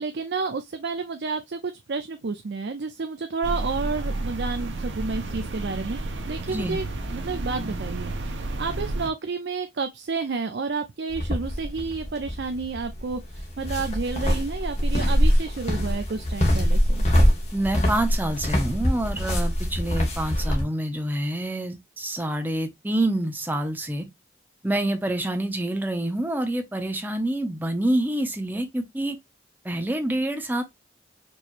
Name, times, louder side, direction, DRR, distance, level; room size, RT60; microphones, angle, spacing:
voice 1, 0.0-6.0 6.3-6.8 7.1-17.0, right 4 dB, 65° right, 0.5 m, -30 dB
sound 1, 3.4-9.1, right 2 dB, 85° right, 0.9 m, -31 dB
voice 2, 6.5-6.8 17.5-24.1 24.6-29.2 29.6-30.6, right 1 dB, 10° right, 0.6 m, -27 dB
sound 2, 11.1-20.6, equal, 35° left, 1.2 m, -24 dB
4.6 x 3.0 x 2.5 m
head